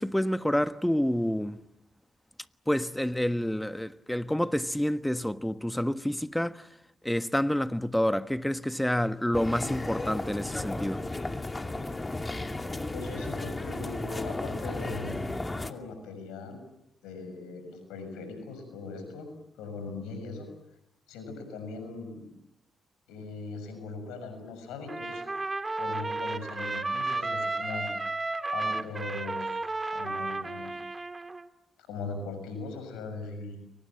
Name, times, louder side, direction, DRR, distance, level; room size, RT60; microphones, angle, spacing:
voice 1, 0.0-1.6 2.7-6.7 7.0-11.0, equal, 5° left, 1.3 m, -28 dB
sound 1, 9.3-15.7, left 2 dB, 25° left, 2.4 m, -34 dB
voice 2, 12.9-16.6 17.0-19.3 19.6-20.5 21.1-22.3 23.1-25.2 25.8-27.9 28.5-29.6 29.9-30.7 31.9-33.6, left 3 dB, 85° left, 6.6 m, -39 dB
Trumpet, 24.9-31.5, right 3 dB, 30° right, 1.8 m, -33 dB
30.0 x 23.5 x 7.6 m
hypercardioid pair, 45°, 0 cm